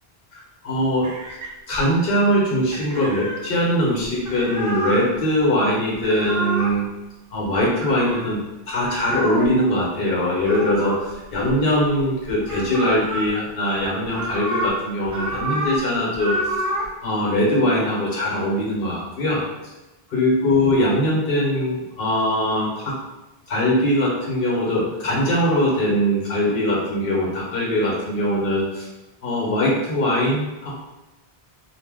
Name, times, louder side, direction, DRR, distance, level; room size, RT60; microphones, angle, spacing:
voice 1, 0.3-1.1 1.7-6.8 7.3-8.4 8.7-16.5 17.0-19.4 20.1-23.0 23.5-28.9 29.2-30.7, left 1 dB, 70° left, -4 dB, 1.1 m, -21 dB
sound 1, 1.0-2.1 2.7-3.4 4.0-5.1 5.9-6.8 7.5-8.3 8.9-9.6 10.5-12.0 12.3-13.3 13.8-14.7 15.0-15.8 16.1-16.9, equal, 30° right, 0.3 m, -28 dB
2.6 x 2.2 x 3.5 m, 1.0 s
omnidirectional pair, 1.0 m